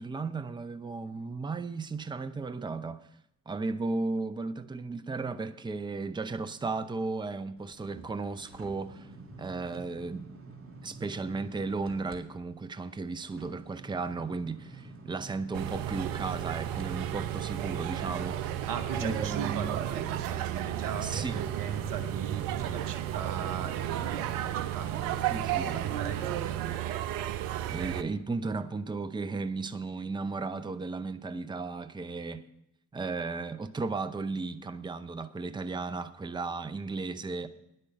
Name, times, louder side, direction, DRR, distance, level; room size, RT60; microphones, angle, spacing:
voice 1, 0.0-3.1 3.5-9.1 9.4-10.3 10.8-18.7 19.0-19.8 21.0-21.4 25.3-25.8 27.7-32.5 32.9-37.5, right 3 dB, 10° right, 0.7 m, -35 dB
sound 1, 7.6-12.2 12.6-26.1 26.6-26.7, right 3 dB, 35° right, 2.2 m, -49 dB
sound 2, 15.5-28.0, right 12 dB, 70° right, 0.7 m, -33 dB
voice 2, 18.7-25.2 25.5-27.0, right 7 dB, 55° right, 1.2 m, -38 dB
10.5 x 9.9 x 6.5 m
figure-of-eight pair, 45°, 39 cm